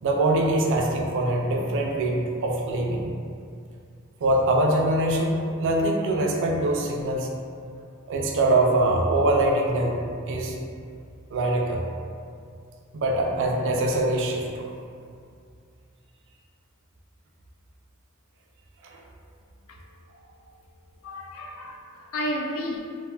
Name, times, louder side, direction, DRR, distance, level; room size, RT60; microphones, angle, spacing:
voice 1, 0.0-3.1 4.2-7.6 8.1-10.0 10.3-10.6 11.3-11.8 12.9-14.7 18.8-19.0, right 1 dB, 60° right, 0 dB, 0.4 m, -23 dB
voice 2, 21.0-22.8, equal, 70° left, 1 dB, 0.4 m, -32 dB
3.2 x 2.1 x 2.3 m, 2.3 s
head